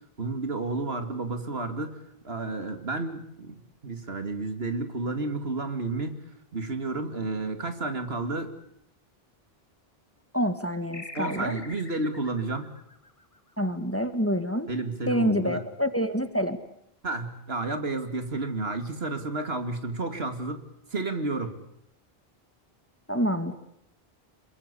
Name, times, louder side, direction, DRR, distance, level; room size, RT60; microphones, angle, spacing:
voice 1, 0.2-2.0 2.2-6.2 6.5-8.5 11.1-12.7 14.7-15.6 17.0-20.6 20.9-21.6, right 3 dB, 75° right, 8 dB, 2.7 m, -31 dB
voice 2, 10.3-11.6 13.6-14.7 15.1-16.6 23.1-23.5, equal, 15° left, 10 dB, 1.7 m, -27 dB
sound 1, 10.9-13.9, left 2 dB, 35° left, 2.2 m, -45 dB
27.5 x 22.5 x 8.4 m, 0.75 s
omnidirectional pair, 1.0 m